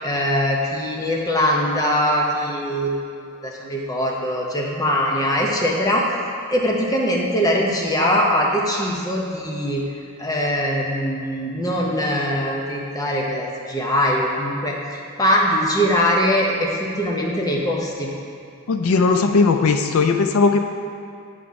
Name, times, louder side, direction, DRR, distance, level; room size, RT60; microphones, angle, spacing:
voice 1, 0.0-3.1 3.4-6.0 6.5-9.8 10.2-18.1, equal, 15° left, -2 dB, 0.7 m, -22 dB
voice 2, 18.7-20.6, left 4 dB, 80° left, 6 dB, 0.4 m, -17 dB
8.8 x 4.1 x 4.7 m, 2.5 s
head